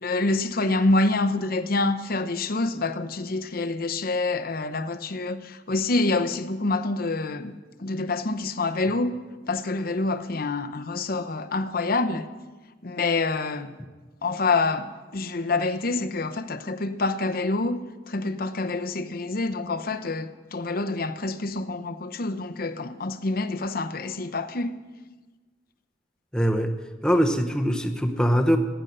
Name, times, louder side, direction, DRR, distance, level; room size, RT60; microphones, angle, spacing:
voice 1, 0.0-7.5 7.8-9.2 9.5-12.3 12.8-13.7 14.2-17.8 18.1-24.7, left 3 dB, 55° left, 0.8 m, -27 dB
voice 2, 26.3-26.7 27.0-28.6, equal, 5° left, 0.9 m, -22 dB
15.5 x 9.1 x 6.7 m
head